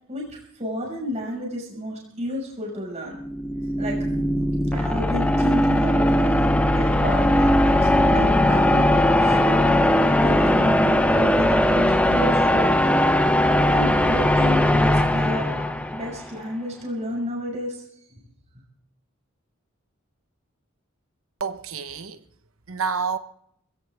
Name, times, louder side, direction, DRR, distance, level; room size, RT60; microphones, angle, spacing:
voice 1, 0.1-3.2 3.8-4.0 4.7-9.7 10.2-12.7 13.7-15.5 15.9-17.8, equal, 35° right, 5.7 m, -31 dB
sound 1, 3.1-16.2, left 1 dB, 5° left, 0.9 m, -19 dB
voice 2, 4.0-4.4 21.4-22.2 22.7-23.2, right 5 dB, 90° right, 1.1 m, -29 dB
21.0 x 16.5 x 3.5 m
head